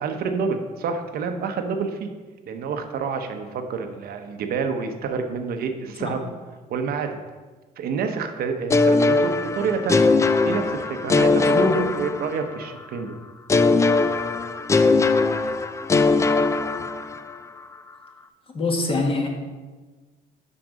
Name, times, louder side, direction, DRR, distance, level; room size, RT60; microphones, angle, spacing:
voice 1, 0.0-2.1 2.5-6.4 6.7-7.2 7.8-10.1 10.4-13.1, right 5 dB, 65° right, 6 dB, 0.8 m, -28 dB
sound 1, 8.7-12.6 13.5-17.4, left 3 dB, 15° left, 0.3 m, -20 dB
voice 2, 11.3-11.8 18.5-19.3, left 3 dB, 35° left, 1 dB, 1.5 m, -24 dB
6.2 x 5.9 x 5.1 m, 1.3 s
cardioid pair, 110°, 17 cm